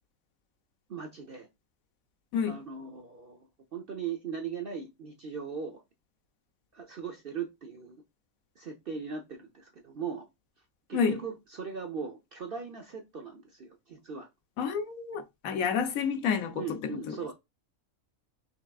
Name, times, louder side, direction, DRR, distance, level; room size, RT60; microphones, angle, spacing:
voice 1, 0.9-1.5 2.4-3.4 3.7-5.8 6.7-8.0 8.6-10.2 10.9-14.3 16.5-17.3, right 6 dB, 50° right, 0.8 m, -39 dB
voice 2, 14.6-17.2, left 6 dB, 80° left, 1.2 m, -29 dB
5.9 x 3.5 x 2.3 m
omnidirectional pair, 1.5 m